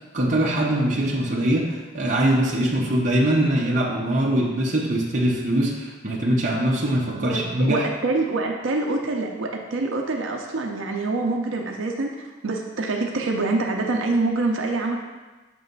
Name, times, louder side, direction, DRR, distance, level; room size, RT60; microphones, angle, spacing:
voice 1, 0.1-7.8, right 1 dB, 40° right, -3 dB, 0.8 m, -22 dB
voice 2, 7.1-12.2 12.4-15.0, right 3 dB, 90° right, 2 dB, 0.6 m, -25 dB
6.8 x 3.2 x 5.3 m, 1.2 s
head